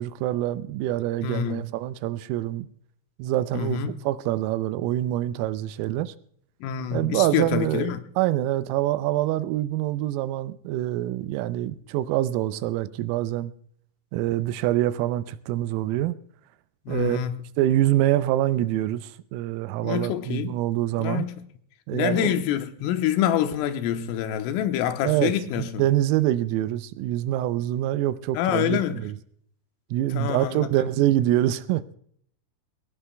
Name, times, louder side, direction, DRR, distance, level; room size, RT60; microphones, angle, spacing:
voice 1, 0.0-2.7 3.2-6.1 6.9-7.9 8.2-13.5 14.1-16.2 16.9-17.2 17.6-21.3 21.9-22.3 25.0-29.1 29.9-32.0, right 14 dB, 85° right, 3.3 m, -25 dB
voice 2, 1.2-1.7 3.5-4.0 6.6-8.0 16.9-17.4 19.8-20.6 21.0-21.4 21.9-25.9 28.3-29.0 30.1-30.7, left 10 dB, 80° left, 3.5 m, -26 dB
22.5 x 18.5 x 2.2 m
omnidirectional pair, 5.9 m